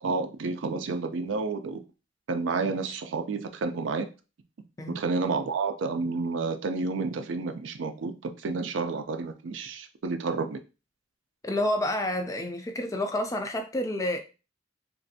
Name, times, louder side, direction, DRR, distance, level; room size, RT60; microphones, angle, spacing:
voice 1, 0.0-1.8 2.3-4.1 4.9-10.6, right 4 dB, 75° right, 0.4 m, -30 dB
voice 2, 11.4-14.2, left 1 dB, 15° left, 0.3 m, -29 dB
3.1 x 2.5 x 2.6 m
head